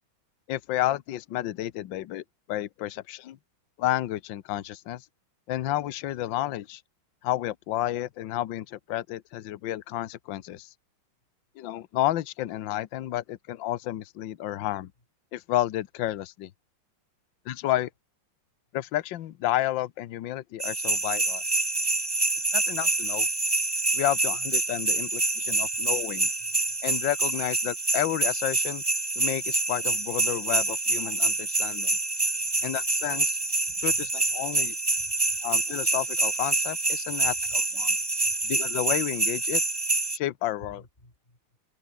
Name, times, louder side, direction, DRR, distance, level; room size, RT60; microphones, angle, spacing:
voice 1, 0.5-2.2 2.5-3.4 3.8-5.0 5.5-6.8 7.2-10.7 11.6-14.9 15.3-16.5 17.5-17.9 18.7-21.4 22.5-23.3 23.9-26.3 26.8-28.8 29.2-32.0 32.6-33.4 33.8-34.7 35.4-38.0 38.4-39.6 40.1-40.8, left 14 dB, 70° left, 1.6 m, -31 dB
sound 1, 20.6-40.2, right 2 dB, 15° right, 1.0 m, -27 dB
voice 2, 25.6-26.8 33.9-34.1 35.0-35.8 37.2-37.6 38.2-38.4 40.6-41.4, left 1 dB, 25° left, 5.1 m, -54 dB
omnidirectional pair, 2.3 m